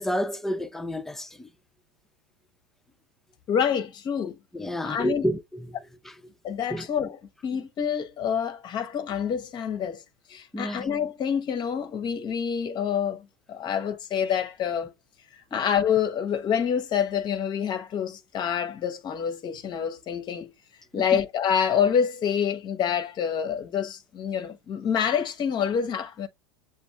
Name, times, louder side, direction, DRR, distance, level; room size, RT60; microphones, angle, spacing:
voice 1, 0.0-1.5 4.5-5.7 6.1-6.2 6.7-6.9 10.5-10.9 15.5-15.6 20.9-21.0, equal, 5° left, 0.5 m, -30 dB
voice 2, 3.5-4.4 4.8-5.3 6.4-10.0 10.3-14.9 15.5-20.5 20.9-26.3, left 8 dB, 35° left, 0.8 m, -27 dB
7.0 x 2.5 x 2.6 m
hypercardioid pair, 90°, 14 cm